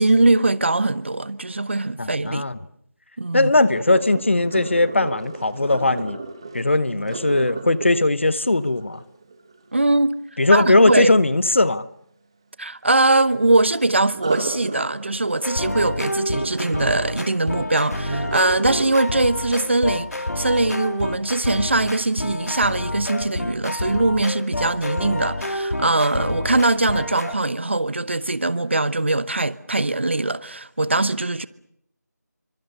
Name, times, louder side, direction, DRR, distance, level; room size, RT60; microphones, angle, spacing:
voice 1, 0.0-2.4 3.2-3.5 9.7-10.1 10.5-11.1 12.6-31.5, right 2 dB, 40° right, 1.0 m, -21 dB
voice 2, 2.0-2.6 3.3-6.2 6.5-9.0 10.4-11.9, left 2 dB, 45° left, 0.9 m, -19 dB
Sink (filling or washing), 3.7-9.7 14.1-21.1 21.6-21.9 22.4-22.5, right 3 dB, 15° right, 1.3 m, -34 dB
sound 1, 15.4-27.4, left 1 dB, 60° left, 2.8 m, -28 dB
27.5 x 24.5 x 6.8 m
figure-of-eight pair, 175°, 10 cm